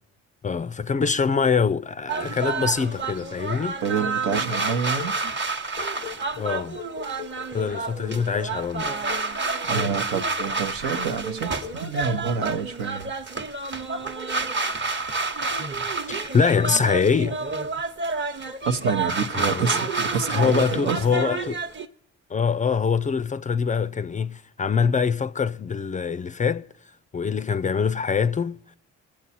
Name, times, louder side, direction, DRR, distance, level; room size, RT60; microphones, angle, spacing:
voice 1, 0.4-3.8 6.4-6.8 7.5-9.0 16.1-17.4 19.3-19.8 20.3-21.6 22.3-26.7 27.1-28.7, left 6 dB, 25° left, 0.3 m, -24 dB
sound 1, 2.1-21.9, right 3 dB, 35° right, 1.0 m, -29 dB
sound 2, 3.8-5.2 5.8-8.6 9.1-9.3 9.7-10.0 10.4-10.7 11.0-11.3 11.6-11.9, left 16 dB, 85° left, 0.5 m, -40 dB
voice 2, 3.8-5.1 9.7-13.1 18.6-21.2, right 6 dB, 80° right, 0.9 m, -28 dB
22.0 x 7.4 x 4.2 m
hypercardioid pair, 55°, 34 cm